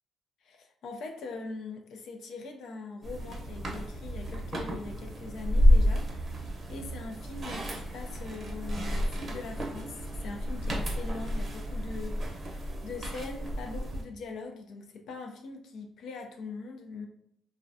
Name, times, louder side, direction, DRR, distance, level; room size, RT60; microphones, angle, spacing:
voice 1, 0.4-17.1, left 3 dB, 70° left, 3 dB, 0.3 m, -42 dB
sound 1, 3.0-14.0, equal, 40° right, 0.6 m, -30 dB
2.4 x 2.0 x 2.5 m, 0.70 s
cardioid pair, 90°, 0 cm